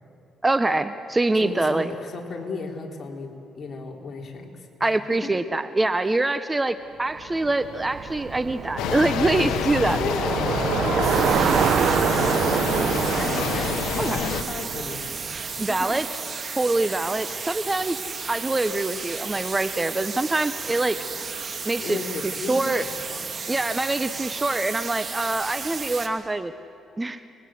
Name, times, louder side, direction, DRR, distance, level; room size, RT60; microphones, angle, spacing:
voice 1, 0.4-1.9 4.8-10.0 14.0-14.3 15.6-16.1 16.6-18.0 18.3-21.0 21.6-22.0 22.2-22.8 23.5-26.5 27.0-27.2, right 2 dB, 20° right, 12 dB, 0.8 m, -24 dB
voice 2, 1.4-5.3 6.0-6.2 9.8-12.8 13.2-15.0 15.4-15.9 16.8-17.1 21.8-23.3, left 4 dB, 45° left, 1 dB, 3.9 m, -35 dB
Bicycle, 7.3-15.6, right 8 dB, 60° right, 0.8 m, -26 dB
sound 1, 8.8-14.4, left 9 dB, 90° left, 1.1 m, -28 dB
sound 2, 11.0-26.1, right 5 dB, 45° right, 2.3 m, -33 dB
30.0 x 21.0 x 7.8 m, 2.6 s
cardioid pair, 90°, 0 cm